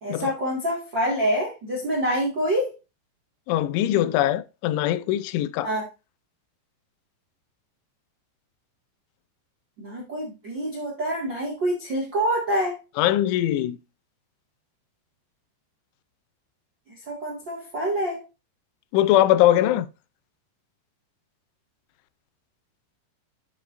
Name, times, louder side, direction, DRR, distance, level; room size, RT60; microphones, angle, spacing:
voice 1, 0.0-2.7 5.6-5.8 9.8-12.8 17.1-18.2, equal, 50° right, 1.3 m, -26 dB
voice 2, 3.5-5.7 13.0-13.8 18.9-19.9, left 13 dB, 90° left, 3.0 m, -21 dB
11.5 x 6.0 x 2.5 m
omnidirectional pair, 5.3 m